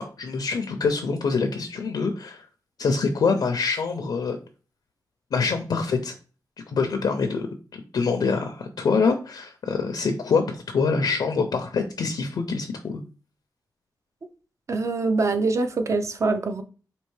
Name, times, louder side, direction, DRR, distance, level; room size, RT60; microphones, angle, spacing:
voice 1, 0.0-2.4 2.8-4.4 5.3-6.1 6.7-7.5 7.9-13.0, left 4 dB, 75° left, 0.5 m, -25 dB
voice 2, 14.7-16.6, right 3 dB, 45° right, 0.5 m, -24 dB
4.4 x 2.8 x 3.1 m
wide cardioid pair, 140°, 7 cm